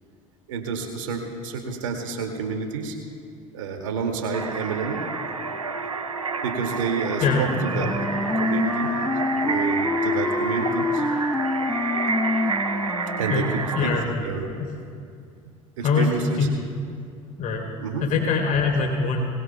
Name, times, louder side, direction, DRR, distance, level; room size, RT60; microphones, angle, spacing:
voice 1, 0.5-3.0 3.5-5.1 6.4-9.0 9.3-11.0 13.2-14.0 14.2-14.5 15.8-16.5 17.3-17.4 17.8-18.1, right 5 dB, 70° right, 3 dB, 2.2 m, -29 dB
sound 1, 4.3-14.1, right 4 dB, 85° right, 0.7 m, -29 dB
Wind instrument woodwind instrument, 7.5-13.5, left 2 dB, 5° left, 1.5 m, -26 dB
voice 2, 13.3-14.3 15.8-16.1 16.4-16.5 17.4-17.6 18.0-19.3, left 4 dB, 50° left, 1 dB, 3.2 m, -23 dB
23.0 x 20.0 x 2.3 m, 2.3 s
figure-of-eight pair, 65°, 17 cm